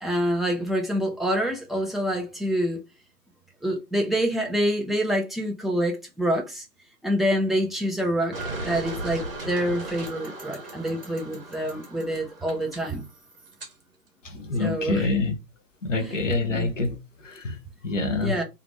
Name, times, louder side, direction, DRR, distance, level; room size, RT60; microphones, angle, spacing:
voice 1, 0.0-2.8 3.6-6.7 7.0-8.3 8.6-13.1 14.6-15.1 16.0-16.1 16.5-16.7 18.2-18.4, equal, ahead, 0.3 m, -26 dB
sound 1, 8.3-13.7, right 2 dB, 35° right, 0.7 m, -37 dB
voice 2, 14.2-15.4 15.8-18.4, left 3 dB, 50° left, 0.8 m, -27 dB
2.8 x 2.4 x 3.1 m
hypercardioid pair, 170°, 50 cm